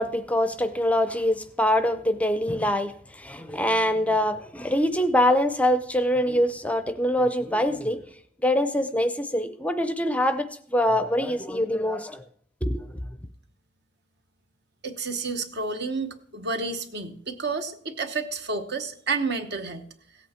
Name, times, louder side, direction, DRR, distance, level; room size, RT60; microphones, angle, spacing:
voice 1, 0.0-8.0 8.4-12.2 12.6-12.9, left 1 dB, 5° left, 0.5 m, -24 dB
voice 2, 14.8-19.8, right 4 dB, 60° right, 1.1 m, -30 dB
16.5 x 8.4 x 4.4 m
head